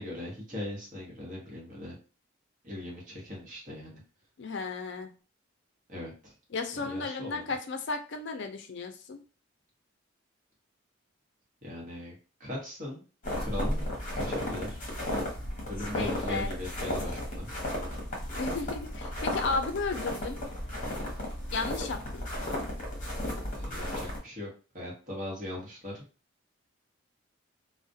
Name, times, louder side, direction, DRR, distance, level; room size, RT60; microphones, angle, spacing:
voice 1, 0.0-1.9 2.6-4.0 5.9-6.3 6.8-7.5 11.6-12.1 12.4-13.0 13.4-13.8 14.1-14.8 15.7-17.5 23.5-24.5 24.7-26.0, left 1 dB, 40° right, -3 dB, 0.9 m, -39 dB
voice 2, 4.4-5.1 6.5-9.2 15.9-16.5 18.4-20.4 21.5-22.2, left 4 dB, 60° left, 6 dB, 0.4 m, -34 dB
sound 1, 13.2-24.2, left 1 dB, 40° left, 0.8 m, -34 dB
2.3 x 2.0 x 2.6 m, 0.35 s
head